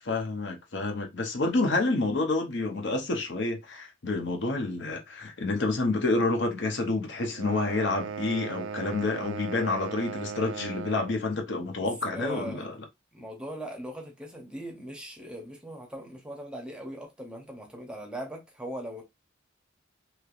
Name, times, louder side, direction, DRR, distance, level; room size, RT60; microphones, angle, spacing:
voice 1, 0.0-12.7, left 3 dB, 60° left, 0.7 m, -28 dB
voice 2, 1.4-1.8 11.8-12.7 13.1-19.0, right 1 dB, 5° right, 0.7 m, -40 dB
sound 1, 7.3-11.2, right 6 dB, 75° right, 0.3 m, -37 dB
3.2 x 2.9 x 2.4 m
head